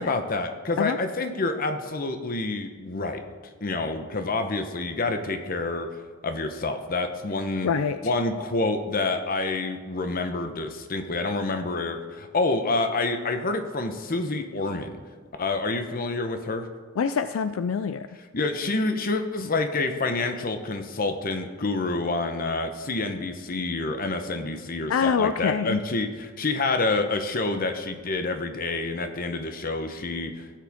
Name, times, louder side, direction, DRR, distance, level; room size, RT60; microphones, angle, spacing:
voice 1, 0.0-3.2 3.6-7.7 8.0-15.0 15.4-16.7 18.3-30.5, left 3 dB, 45° left, 7 dB, 0.9 m, -28 dB
voice 2, 7.6-8.0 17.0-18.1 24.9-25.8, left 6 dB, 80° left, 11 dB, 0.4 m, -25 dB
16.0 x 7.5 x 3.6 m, 1.5 s
head